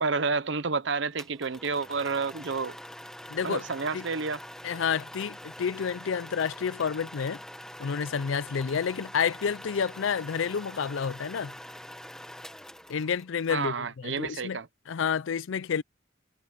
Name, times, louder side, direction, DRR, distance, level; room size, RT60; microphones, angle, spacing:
voice 1, 0.0-2.8 3.4-4.4 13.5-14.7, right 4 dB, 60° right, 0.8 m, -30 dB
sound 1, 1.2-13.5, equal, 5° left, 1.1 m, -45 dB
voice 2, 3.3-3.6 3.9-4.1 4.6-7.4 7.8-11.5 12.9-14.6 14.9-15.8, left 6 dB, 70° left, 0.4 m, -29 dB
head